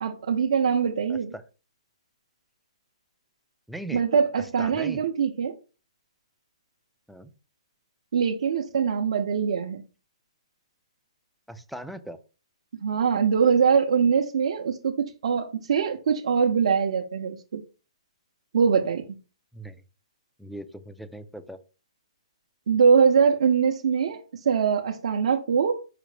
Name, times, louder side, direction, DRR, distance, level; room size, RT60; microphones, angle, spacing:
voice 1, 0.0-1.3 3.9-5.6 8.1-9.8 12.8-14.9 15.2-17.6 18.5-19.0 22.7-25.8, right 6 dB, 65° right, 0.6 m, -23 dB
voice 2, 1.1-1.4 3.7-4.0 4.6-5.0 7.1-7.3 11.5-12.2 19.5-19.8 20.4-21.6, right 1 dB, ahead, 0.3 m, -39 dB
4.9 x 2.1 x 4.8 m
hypercardioid pair, 160°, 3 cm